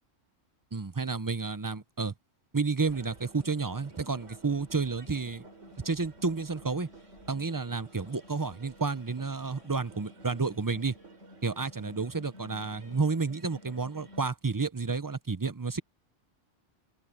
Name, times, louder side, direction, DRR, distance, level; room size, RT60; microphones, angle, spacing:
voice 1, 0.7-2.1 2.5-5.4 5.8-6.9 7.3-10.9 11.4-15.8, right 4 dB, 25° right, 0.4 m, -31 dB
sound 1, 2.9-14.3, right 1 dB, 80° right, 4.4 m, -51 dB
open air
omnidirectional pair, 1.2 m